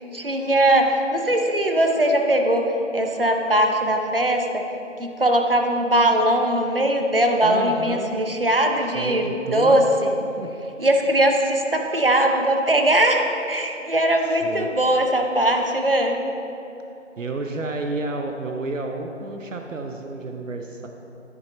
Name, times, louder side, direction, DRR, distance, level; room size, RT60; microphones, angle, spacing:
voice 1, 0.1-2.7 2.9-4.6 5.0-10.1 10.8-16.2, right 1 dB, 50° right, 3 dB, 0.7 m, -20 dB
voice 2, 7.4-8.2 8.8-9.8 10.4-10.5 14.2-14.7 17.2-20.9, right 2 dB, 85° right, 4 dB, 0.8 m, -31 dB
10.0 x 7.3 x 3.0 m, 2.8 s
figure-of-eight pair, 180°, 37 cm